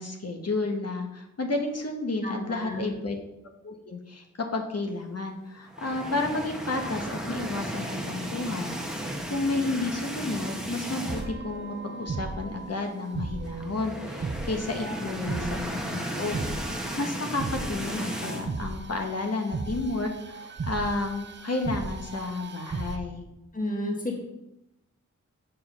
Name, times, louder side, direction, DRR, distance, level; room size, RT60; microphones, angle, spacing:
voice 1, 0.0-3.2 3.6-16.3 16.7-23.2, left 2 dB, 50° left, 3 dB, 1.2 m, -31 dB
voice 2, 2.2-3.0 14.8-15.6 23.5-24.2, left 1 dB, 25° left, 0 dB, 1.7 m, -33 dB
sound 1, 5.7-11.5 11.9-12.0 12.3-12.4 13.4-18.5, equal, ahead, 1.3 m, -35 dB
sound 2, 11.1-23.0, right 3 dB, 35° right, 0.7 m, -37 dB
7.4 x 4.8 x 5.6 m, 0.89 s
wide cardioid pair, 60°, 31 cm